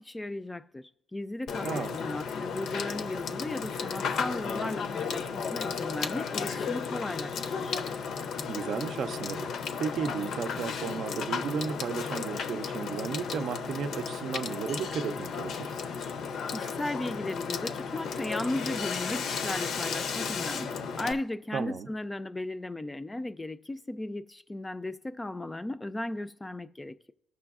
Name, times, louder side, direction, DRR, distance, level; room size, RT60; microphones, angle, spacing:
voice 1, 0.0-7.8 16.5-27.1, left 1 dB, 15° left, 0.4 m, -36 dB
Water / Water tap faucet / Sink (filling or washing), 1.5-21.1, left 6 dB, 70° left, 0.6 m, -34 dB
voice 2, 1.6-2.0 8.4-9.5 9.8-15.7 21.5-21.9, right 6 dB, 65° right, 0.5 m, -34 dB
15.5 x 6.0 x 2.4 m
cardioid pair, 90°, 0 cm